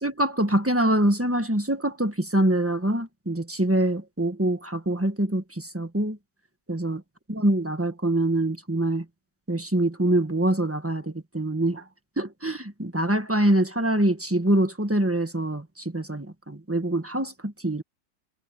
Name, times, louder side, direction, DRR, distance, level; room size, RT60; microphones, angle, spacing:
voice 1, 0.0-6.2 6.7-7.0 7.3-9.0 9.5-11.8 12.2-17.8, right 1 dB, 10° right, 1.2 m, -24 dB
omnidirectional pair, 2.0 m